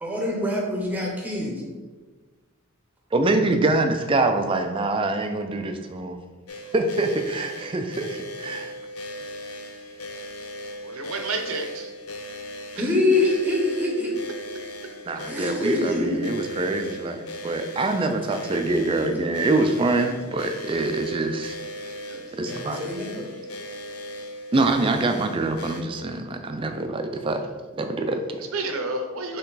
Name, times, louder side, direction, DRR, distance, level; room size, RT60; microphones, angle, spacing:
voice 1, 0.0-1.6 12.8-14.1 15.0-16.1 19.0-19.1 22.4-23.3, left 2 dB, 5° right, -2 dB, 0.7 m, -25 dB
voice 2, 3.1-6.1 6.7-8.7 15.1-21.6 22.4-22.8 24.5-27.4 27.8-28.4, right 2 dB, 25° right, 6 dB, 0.3 m, -25 dB
sound 1, 6.5-25.8, left 1 dB, 85° left, 0.5 m, -38 dB
voice 3, 10.8-11.9 12.8-12.9 19.9-20.1 22.1-22.3 28.5-29.4, right 3 dB, 75° right, 5 dB, 0.6 m, -31 dB
4.5 x 3.0 x 3.9 m, 1.4 s
head